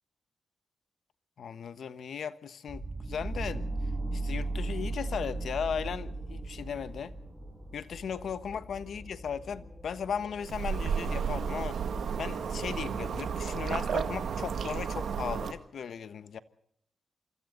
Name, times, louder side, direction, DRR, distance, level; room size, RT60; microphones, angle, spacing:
voice 1, 1.4-3.7 4.1-7.1 7.7-11.8 12.2-16.4, left 7 dB, 75° left, 1.3 m, -37 dB
sound 1, 2.7-14.6, right 2 dB, 20° right, 7.9 m, -39 dB
sound 2, 10.4-15.5, right 6 dB, 85° right, 1.8 m, -32 dB
27.5 x 25.5 x 4.0 m
wide cardioid pair, 150°, 0 cm